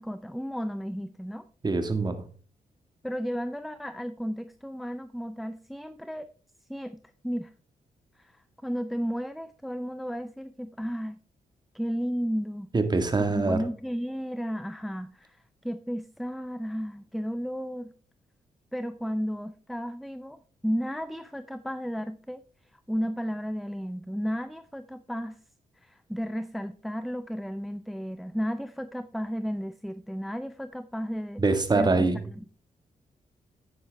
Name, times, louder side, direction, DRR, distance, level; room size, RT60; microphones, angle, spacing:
voice 1, 0.0-1.4 3.0-6.3 6.7-7.0 7.2-7.5 8.2-11.2 11.7-12.7 13.3-17.9 18.7-22.4 22.7-25.4 25.8-31.4 31.7-32.6, equal, ahead, 12 dB, 0.5 m, -33 dB
voice 2, 1.6-2.3 12.7-13.6 31.4-32.2, right 3 dB, 30° right, 8 dB, 1.7 m, -24 dB
9.7 x 9.3 x 3.4 m, 0.41 s
cardioid pair, 85°, 14 cm